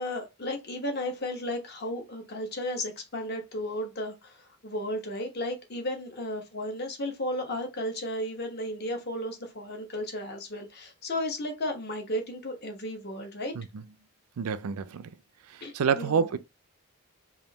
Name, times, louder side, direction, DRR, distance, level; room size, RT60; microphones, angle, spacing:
voice 1, 0.0-13.5 15.6-16.3, left 1 dB, 45° left, 1.1 m, -34 dB
voice 2, 14.4-15.1 15.5-16.4, right 6 dB, 80° right, 0.4 m, -28 dB
3.5 x 2.6 x 4.0 m
head